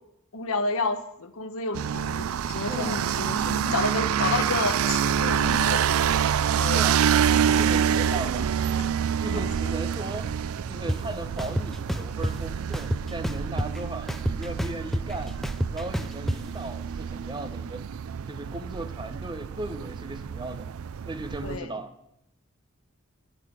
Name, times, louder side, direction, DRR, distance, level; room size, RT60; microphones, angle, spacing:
voice 1, 0.3-5.8 6.6-6.9 9.3-9.5 21.4-21.7, left 3 dB, 80° left, 1.0 m, -30 dB
sound 1, 1.7-21.6, right 8 dB, 85° right, 0.4 m, -27 dB
voice 2, 2.7-3.0 6.7-7.0 7.5-8.7 9.2-10.3 10.7-15.4 15.7-17.9 18.3-20.7 21.1-21.9, right 2 dB, 20° right, 0.8 m, -37 dB
sound 2, 10.9-11.0 11.4-12.3 12.7-13.8 14.1-16.4, equal, ahead, 0.4 m, -28 dB
9.8 x 8.5 x 8.9 m
head